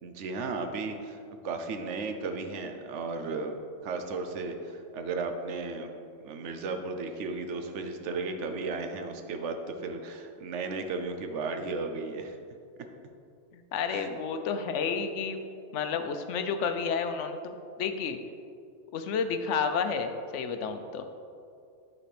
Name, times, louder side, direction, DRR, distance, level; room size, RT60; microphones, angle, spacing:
voice 1, 0.0-5.9 6.2-12.4 13.9-14.1, right 3 dB, 80° right, 6 dB, 1.0 m, -35 dB
voice 2, 13.5-15.4 15.7-18.2 18.9-21.1, left 5 dB, 85° left, 8 dB, 0.9 m, -31 dB
10.0 x 4.2 x 3.3 m, 2.4 s
omnidirectional pair, 1.2 m